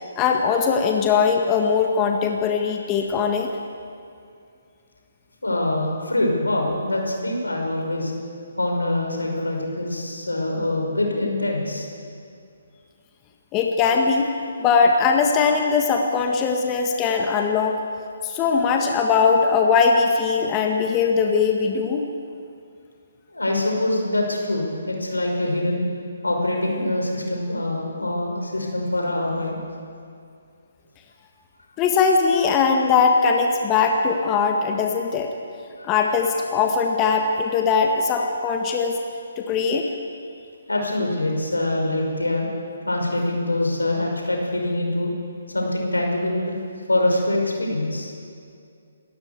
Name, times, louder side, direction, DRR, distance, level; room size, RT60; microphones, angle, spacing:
voice 1, 0.2-3.5 13.5-14.3 14.6-17.8 18.2-22.0 31.8-35.3 35.8-39.0 39.4-39.9, left 5 dB, 20° left, 3 dB, 1.6 m, -20 dB
voice 2, 5.4-8.1 8.6-11.9 23.3-25.8 26.2-29.6 35.8-35.9 40.7-42.5 42.8-45.1 45.5-46.6 46.9-48.1, left 1 dB, 85° left, 0 dB, 5.8 m, -24 dB
27.5 x 13.5 x 8.3 m, 2.4 s
figure-of-eight pair, 140°, 0 cm